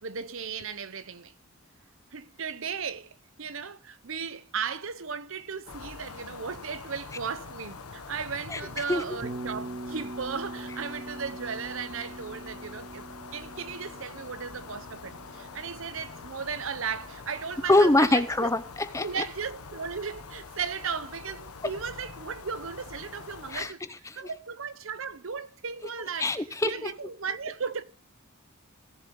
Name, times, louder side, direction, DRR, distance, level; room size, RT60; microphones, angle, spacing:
voice 1, 0.0-1.3 2.1-13.1 13.3-18.5 19.0-23.8 24.1-27.8, right 6 dB, 60° right, 0.8 m, -36 dB
sound 1, 5.7-23.7, left 4 dB, 90° left, 1.1 m, -45 dB
Bass guitar, 9.2-17.3, right 2 dB, 25° right, 0.8 m, -43 dB
voice 2, 17.6-19.2 23.5-24.2 26.2-26.9, left 2 dB, 15° left, 0.6 m, -24 dB
18.0 x 6.9 x 3.8 m
head